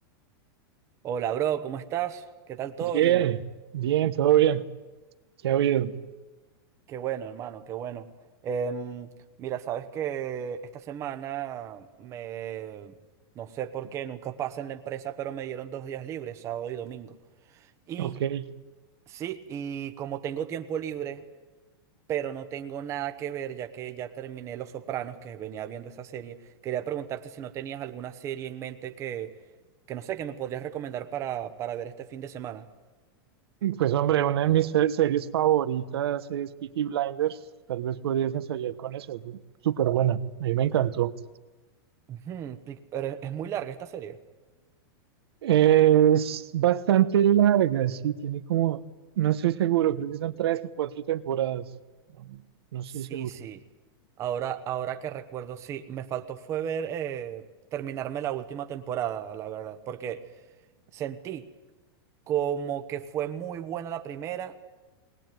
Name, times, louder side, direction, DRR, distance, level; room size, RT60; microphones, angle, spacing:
voice 1, 1.0-3.3 6.9-8.1 8.4-9.1 9.4-12.9 13.3-17.2 17.5-18.1 19.1-21.2 22.1-29.3 29.9-32.7 42.1-44.2 52.9-53.6 54.2-57.5 57.7-60.2 60.9-61.4 62.3-64.7, right 9 dB, 20° right, 8 dB, 1.0 m, -34 dB
voice 2, 2.9-3.4 3.7-4.6 5.4-5.9 18.0-18.4 33.6-37.4 37.7-39.4 39.6-41.1 45.4-48.8 49.2-51.6 52.2-52.4 52.7-53.3, right 11 dB, 75° right, 12 dB, 1.1 m, -24 dB
20.0 x 20.0 x 9.3 m, 1.2 s
supercardioid pair, 165°, 13 cm